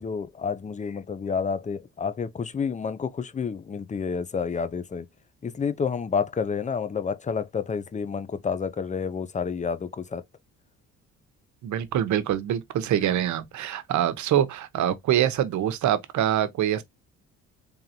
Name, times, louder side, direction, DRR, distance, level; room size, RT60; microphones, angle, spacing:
voice 1, 0.0-5.1 5.4-10.2, left 6 dB, 25° left, 0.5 m, -29 dB
voice 2, 11.6-16.8, right 11 dB, 70° right, 0.8 m, -25 dB
3.8 x 3.4 x 2.7 m
cardioid pair, 90°, 30 cm